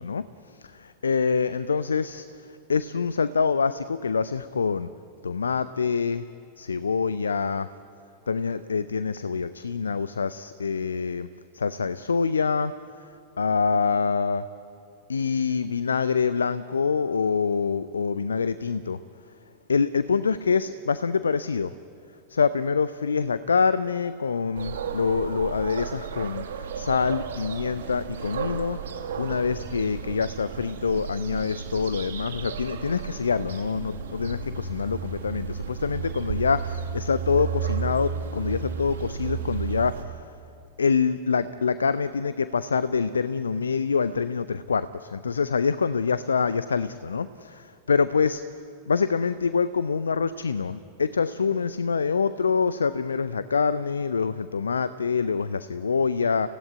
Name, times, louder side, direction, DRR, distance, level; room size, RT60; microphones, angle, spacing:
voice 1, 0.0-4.9 5.2-6.3 6.6-7.7 8.3-11.3 11.5-14.5 15.1-19.0 19.7-21.7 22.3-40.3 40.8-48.4 48.9-56.5, left 5 dB, 75° left, 15 dB, 0.5 m, -26 dB
sound 1, 24.5-40.0, right 7 dB, 65° right, 2.1 m, -33 dB
29.0 x 16.5 x 9.5 m, 2.6 s
figure-of-eight pair, 90°, 0 cm